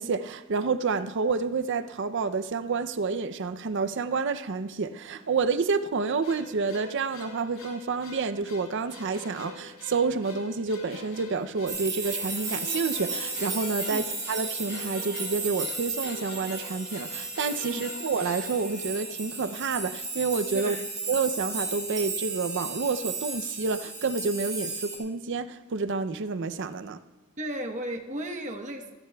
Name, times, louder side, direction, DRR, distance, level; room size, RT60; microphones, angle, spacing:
voice 1, 0.0-20.8 21.1-27.0, right 4 dB, 55° right, 0.5 m, -29 dB
sound 1, 6.2-19.5, left 3 dB, 75° left, 2.7 m, -45 dB
sound 2, 11.7-25.0, right 3 dB, 20° right, 4.2 m, -34 dB
voice 2, 20.5-20.8 27.4-28.9, right 1 dB, 35° right, 1.1 m, -34 dB
28.0 x 9.9 x 2.3 m
head